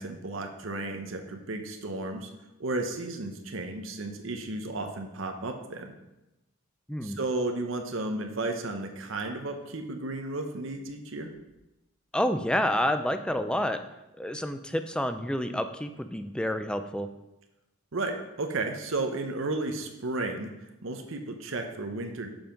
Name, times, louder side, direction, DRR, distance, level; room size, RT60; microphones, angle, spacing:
voice 1, 0.0-2.3 2.6-5.9 7.0-11.3 17.9-20.5 20.8-22.3, right 2 dB, 70° right, 5 dB, 0.8 m, -33 dB
voice 2, 12.1-13.8 14.2-17.1, left 1 dB, 5° left, 8 dB, 0.4 m, -29 dB
7.0 x 5.6 x 5.2 m, 0.96 s
head